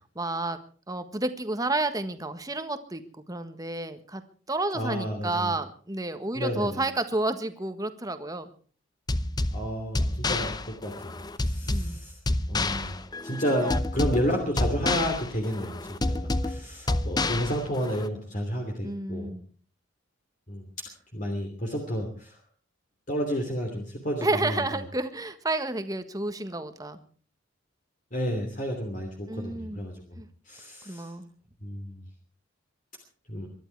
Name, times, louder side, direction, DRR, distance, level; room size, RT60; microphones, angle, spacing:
voice 1, 0.1-0.6 0.9-3.0 3.3-4.2 4.5-8.5 11.7-12.0 18.8-19.4 24.2-27.0 29.3-29.8 30.2-30.3 30.8-31.3, right 2 dB, 20° right, 9 dB, 1.5 m, -30 dB
voice 2, 4.7-5.5 6.3-6.8 9.5-12.2 12.5-13.0 13.2-19.3 20.5-20.7 21.1-22.4 23.1-24.8 28.1-30.2 30.4-31.1 31.6-32.0 33.3-33.5, equal, 40° left, 2 dB, 3.0 m, -31 dB
sound 1, 9.1-18.1, left 2 dB, 20° left, 0.7 m, -29 dB
23.5 x 12.0 x 4.7 m, 0.43 s
head